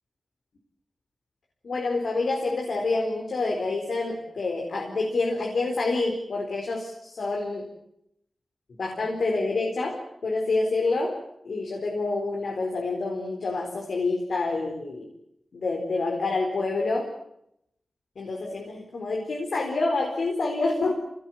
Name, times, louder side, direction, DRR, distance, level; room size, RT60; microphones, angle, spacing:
voice 1, 1.6-7.7 8.8-11.2 11.4-15.1 15.6-17.1 18.2-20.9, left 3 dB, 80° left, 1 dB, 4.4 m, -27 dB
25.5 x 19.0 x 9.2 m, 0.80 s
cardioid pair, 55°, 0 cm